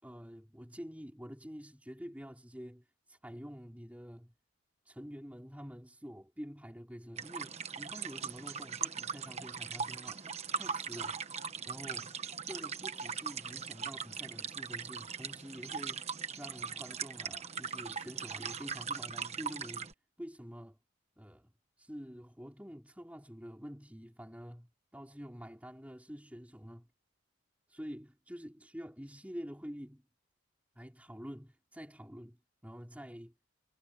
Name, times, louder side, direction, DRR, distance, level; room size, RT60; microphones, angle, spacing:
voice 1, 0.0-4.3 4.8-11.2 11.6-12.2 12.4-19.9 20.2-20.8 21.2-21.5 21.8-26.9 27.7-30.1 30.7-33.3, equal, 5° right, 4.7 m, -48 dB
sound 1, 7.2-19.9, right 6 dB, 30° right, 1.2 m, -40 dB
head